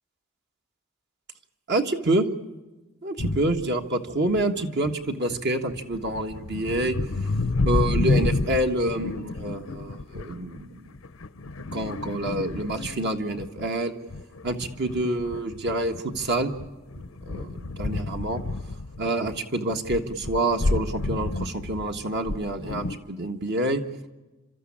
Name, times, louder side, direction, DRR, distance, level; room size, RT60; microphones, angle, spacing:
voice 1, 1.7-2.3 3.0-7.0 7.6-10.7 11.7-13.9 14.4-16.5 17.3-18.4 19.0-23.8, right 1 dB, 55° right, 5 dB, 1.5 m, -27 dB
sound 1, 3.2-3.6 4.3-4.9 5.3-13.7 14.1-19.4 19.7-23.0, left 2 dB, 90° left, 0.9 m, -30 dB
29.5 x 13.5 x 8.7 m, 1.1 s
head